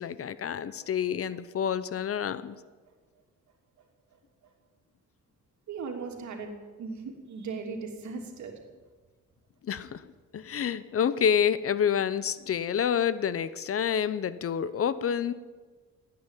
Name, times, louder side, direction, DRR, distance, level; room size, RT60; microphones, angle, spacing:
voice 1, 0.0-2.6 9.6-10.0 10.3-15.3, left 8 dB, 50° left, 15 dB, 0.8 m, -28 dB
voice 2, 5.7-8.5 10.4-10.5, right 4 dB, 70° right, 2 dB, 3.1 m, -38 dB
16.5 x 9.7 x 9.1 m, 1.4 s
cardioid pair, 90°, 30 cm